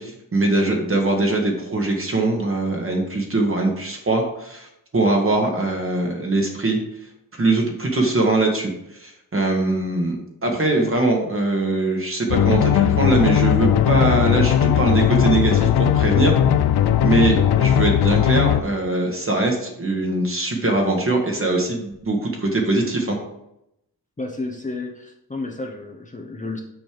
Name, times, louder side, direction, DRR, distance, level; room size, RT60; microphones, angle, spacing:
voice 1, 0.0-4.7 4.9-6.8 7.4-10.2 10.4-16.4 17.0-23.2, right 2 dB, 35° right, 1 dB, 1.5 m, -21 dB
sound 1, 12.3-18.6, left 10 dB, 85° left, 0.5 m, -18 dB
voice 2, 24.2-26.6, left 3 dB, 20° left, 1 dB, 0.8 m, -31 dB
6.3 x 5.2 x 5.1 m, 0.82 s
wide cardioid pair, 115°, 38 cm